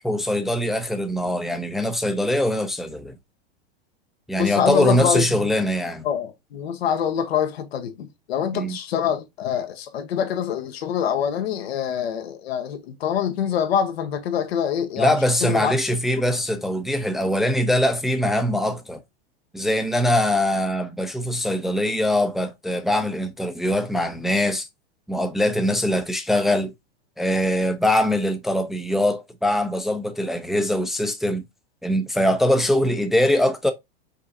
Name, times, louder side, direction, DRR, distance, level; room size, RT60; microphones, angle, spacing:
voice 1, 0.0-3.2 4.3-6.0 8.5-8.8 15.0-19.0 19.5-24.7 25.1-26.7 27.2-31.4 31.8-33.7, left 1 dB, ahead, 0.6 m, -22 dB
voice 2, 4.4-5.5 6.0-15.8, left 8 dB, 80° left, 1.2 m, -25 dB
5.4 x 3.7 x 2.7 m
hypercardioid pair, 120°, 31 cm